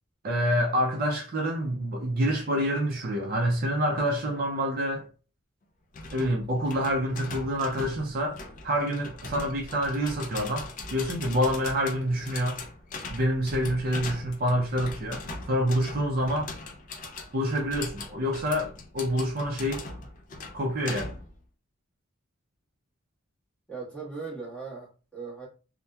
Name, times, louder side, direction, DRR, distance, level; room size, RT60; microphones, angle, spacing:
voice 1, 0.2-5.1 6.1-8.4 8.6-12.6 13.1-16.5 17.3-19.8 20.5-21.1, equal, 45° right, 0.4 m, -27 dB
sound 1, 5.9-21.4, left 3 dB, 40° left, 0.3 m, -41 dB
voice 2, 23.7-25.5, right 4 dB, 5° left, 1.2 m, -38 dB
2.8 x 2.1 x 2.2 m
head